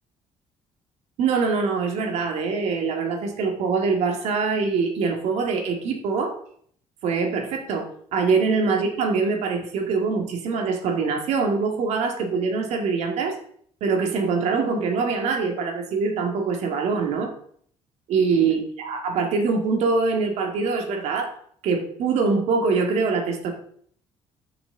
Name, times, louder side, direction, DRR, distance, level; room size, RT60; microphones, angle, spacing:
voice 1, 1.2-6.4 7.0-13.4 13.8-17.3 18.1-21.3 21.6-23.5, right 4 dB, 70° right, 4 dB, 2.1 m, -24 dB
13.0 x 6.1 x 3.8 m, 0.62 s
supercardioid pair, 85°, 12 cm